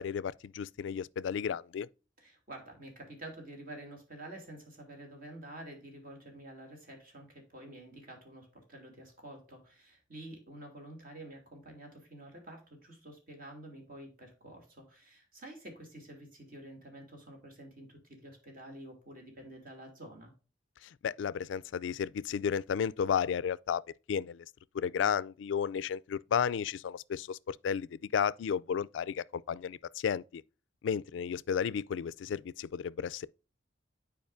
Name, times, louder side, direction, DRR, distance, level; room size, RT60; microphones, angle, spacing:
voice 1, 0.0-1.9 20.8-23.8 24.1-24.5 24.7-30.4 30.8-33.3, left 7 dB, 85° left, 0.3 m, -33 dB
voice 2, 2.2-20.3, right 1 dB, 50° right, 2.5 m, -49 dB
9.5 x 4.8 x 2.5 m
head